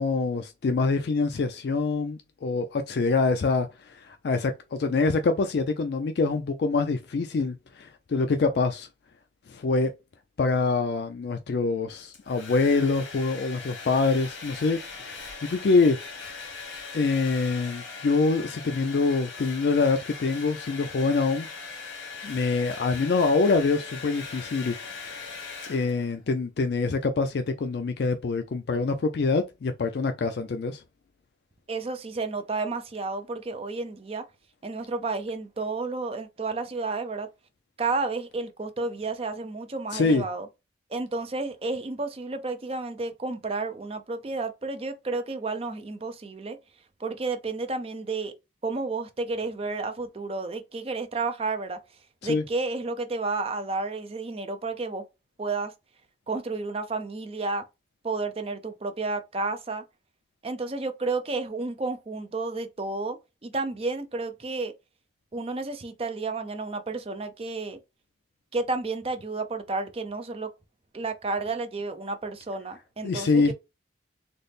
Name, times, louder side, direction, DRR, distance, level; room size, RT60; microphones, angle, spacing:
voice 1, 0.0-8.9 9.5-9.9 10.4-16.0 16.9-21.5 22.2-25.2 25.7-30.8 39.9-40.2 52.2-52.4 73.0-73.5, left 4 dB, 60° left, 0.3 m, -25 dB
Domestic sounds home sounds, 11.9-26.2, left 4 dB, 80° left, 1.5 m, -40 dB
voice 2, 31.7-34.2 34.6-37.3 37.8-40.5 40.9-46.6 47.0-48.3 48.6-51.8 52.2-55.0 55.4-55.7 56.3-57.6 58.0-59.8 60.4-63.2 63.4-64.7 65.3-67.8 68.5-70.5 70.9-73.5, right 3 dB, 30° right, 0.4 m, -31 dB
4.0 x 2.0 x 3.4 m
head